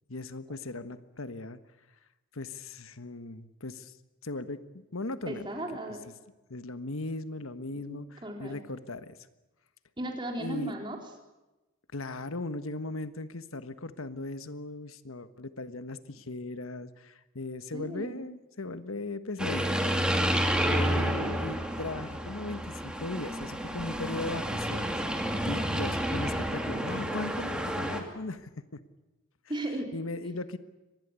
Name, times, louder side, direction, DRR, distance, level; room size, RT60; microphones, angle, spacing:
voice 1, 0.1-1.6 2.3-3.9 4.2-5.5 6.5-9.2 10.4-10.7 11.9-19.8 20.6-24.9 25.4-28.8 29.9-30.6, left 2 dB, 90° left, 11 dB, 1.4 m, -38 dB
voice 2, 5.3-6.0 7.7-8.6 10.0-11.0 17.7-18.2 29.5-29.9, right 1 dB, 20° right, 2 dB, 4.1 m, -36 dB
sound 1, 19.4-28.0, equal, 5° right, 2.4 m, -30 dB
24.5 x 20.0 x 8.3 m, 1.0 s
head